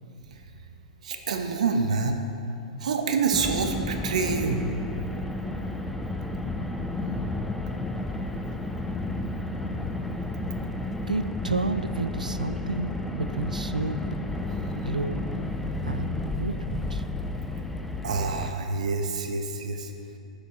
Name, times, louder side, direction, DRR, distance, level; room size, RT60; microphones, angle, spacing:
voice 1, 1.0-2.2 2.8-4.7 18.0-19.9, right 4 dB, 65° right, 6 dB, 1.1 m, -27 dB
Car, 3.3-18.5, left 2 dB, 5° left, 0.6 m, -32 dB
voice 2, 11.1-14.2 14.7-15.2 15.8-17.0, right 2 dB, 85° right, 11 dB, 0.6 m, -31 dB
19.0 x 10.0 x 3.1 m, 2.6 s
figure-of-eight pair, 105°, 4 cm